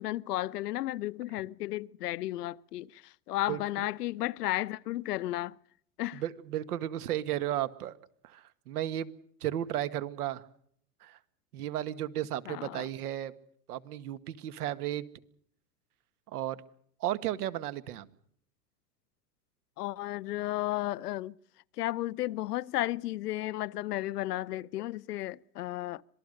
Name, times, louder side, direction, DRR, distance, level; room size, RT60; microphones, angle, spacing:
voice 1, 0.0-5.6 6.0-6.2 12.5-12.9 19.8-21.3 21.8-26.0, left 16 dB, 75° left, 0.8 m, -33 dB
voice 2, 6.1-8.0 8.2-9.1 9.4-10.4 11.0-11.2 11.5-13.3 13.7-15.1 16.3-16.6 17.0-18.1, right 12 dB, 70° right, 1.7 m, -34 dB
26.0 x 20.0 x 6.6 m
hypercardioid pair, 140°, 47 cm